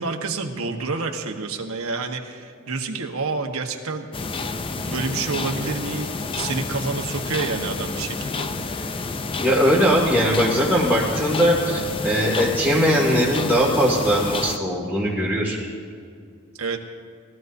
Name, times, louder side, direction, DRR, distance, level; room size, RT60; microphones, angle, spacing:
voice 1, 0.0-4.1 4.7-6.1 6.3-9.0 16.6-16.8, right 4 dB, 90° right, 3 dB, 1.2 m, -29 dB
sound 1, 4.1-14.6, left 3 dB, 25° left, 0.4 m, -29 dB
voice 2, 9.4-15.6, equal, 5° left, -7 dB, 2.3 m, -20 dB
21.5 x 14.5 x 2.7 m, 2.2 s
head